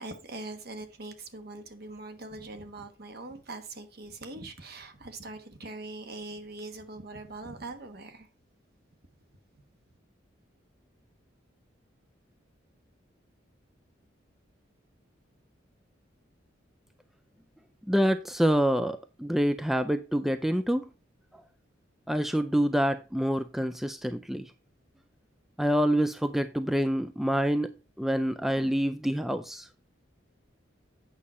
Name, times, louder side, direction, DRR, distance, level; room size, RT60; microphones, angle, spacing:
voice 1, 0.0-8.3, right 2 dB, 55° right, 1.2 m, -42 dB
voice 2, 17.9-20.8 22.1-24.5 25.6-29.7, equal, ahead, 0.3 m, -27 dB
8.6 x 6.2 x 4.1 m
head